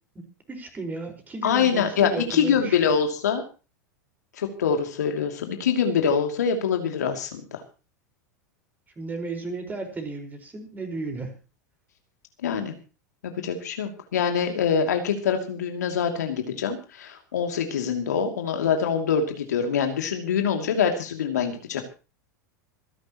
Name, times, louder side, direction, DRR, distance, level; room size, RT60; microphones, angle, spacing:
voice 1, 0.1-2.8 8.9-11.4, right 3 dB, 20° right, 4 dB, 5.0 m, -34 dB
voice 2, 1.4-3.4 4.4-7.6 12.4-12.7 13.2-21.8, left 7 dB, 70° left, 4 dB, 2.8 m, -24 dB
26.0 x 11.5 x 3.1 m, 0.33 s
figure-of-eight pair, 85°, 9 cm